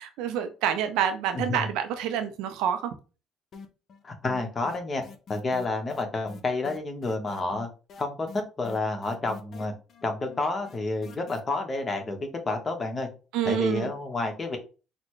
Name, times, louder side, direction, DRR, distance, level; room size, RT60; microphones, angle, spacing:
voice 1, 0.0-3.0 13.3-13.9, right 9 dB, 80° right, 0.4 m, -28 dB
sound 1, 3.5-4.0 4.3-11.4, left 5 dB, 55° left, 0.5 m, -45 dB
voice 2, 4.0-5.0 5.3-7.7 8.0-9.7 10.0-13.1 13.4-14.6, left 2 dB, 30° left, 1.1 m, -30 dB
4.0 x 2.1 x 3.1 m
supercardioid pair, 75°, 0 cm